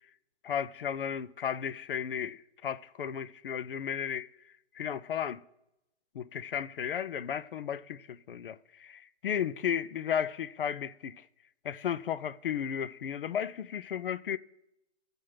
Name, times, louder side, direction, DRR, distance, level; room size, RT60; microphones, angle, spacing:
voice 1, 0.4-4.3 4.8-5.4 6.1-11.2 11.6-14.4, left 8 dB, 50° left, 0.5 m, -34 dB
14.5 x 5.1 x 6.0 m
hypercardioid pair, 150°, 35 cm